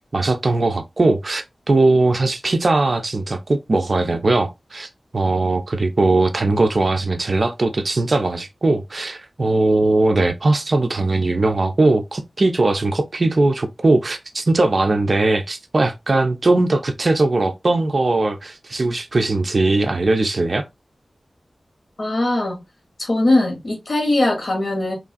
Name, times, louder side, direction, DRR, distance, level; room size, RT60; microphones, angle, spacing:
voice 1, 0.1-20.6, right 2 dB, 55° right, 0.3 m, -19 dB
voice 2, 22.0-22.6 23.0-24.9, left 2 dB, 70° left, 0.9 m, -20 dB
3.0 x 2.4 x 2.4 m
wide cardioid pair, 75°, 0 cm